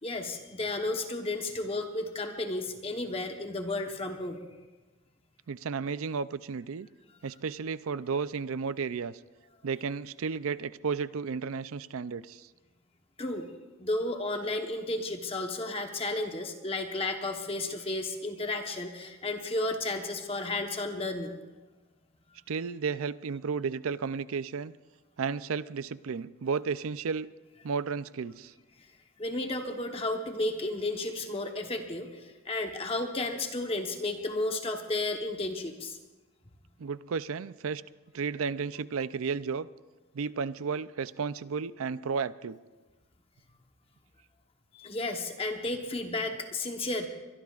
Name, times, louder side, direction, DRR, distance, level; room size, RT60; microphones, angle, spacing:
voice 1, 0.0-4.4 13.2-13.5 13.8-21.4 28.8-28.9 29.2-36.0 44.7-47.1, left 2 dB, 25° left, 4 dB, 1.1 m, -33 dB
voice 2, 5.5-6.9 7.2-9.2 9.6-12.5 22.5-24.7 25.2-27.3 27.6-28.5 36.8-37.8 38.1-39.7 40.1-42.6, right 5 dB, 70° right, 16 dB, 0.4 m, -33 dB
23.0 x 22.5 x 2.4 m, 1.2 s
head